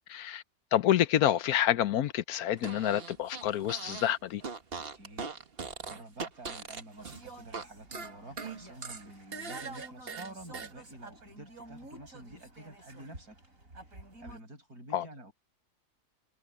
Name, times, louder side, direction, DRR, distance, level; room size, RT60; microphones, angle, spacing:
voice 1, 0.1-0.4 0.7-4.4 14.9-15.1, left 11 dB, 80° left, 1.2 m, -28 dB
Fart, 2.6-4.1 4.4-7.6 7.9-10.7, right 5 dB, 40° right, 1.5 m, -40 dB
voice 2, 4.8-5.3 5.7-13.4 14.2-15.3, right 1 dB, 80° right, 7.5 m, -49 dB
sound 1, 7.0-14.4, right 2 dB, 60° right, 6.6 m, -50 dB
omnidirectional pair, 1.6 m